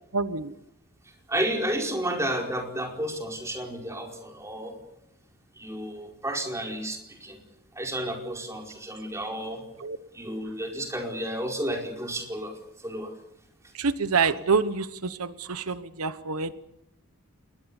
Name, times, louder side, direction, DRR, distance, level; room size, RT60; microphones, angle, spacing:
voice 1, 0.1-0.5 9.8-10.0 13.7-16.5, right 5 dB, 90° right, 13 dB, 1.1 m, -27 dB
voice 2, 1.3-4.7 5.6-7.4 7.7-9.6 10.1-12.5 12.8-13.1, right 1 dB, 15° right, 1 dB, 4.8 m, -31 dB
27.5 x 20.5 x 7.1 m, 0.83 s
head